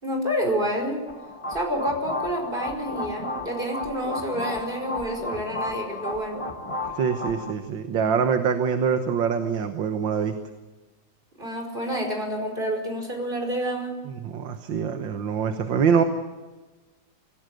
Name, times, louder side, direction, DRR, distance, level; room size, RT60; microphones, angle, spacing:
voice 1, 0.0-1.0 1.5-6.4 11.4-14.0, equal, 25° right, 3 dB, 5.4 m, -28 dB
sound 1, 1.1-7.5, left 2 dB, 15° left, 1.6 m, -33 dB
voice 2, 7.0-10.3 14.1-16.0, right 6 dB, 85° right, 7 dB, 2.0 m, -24 dB
25.5 x 18.0 x 7.8 m, 1.2 s
omnidirectional pair, 2.0 m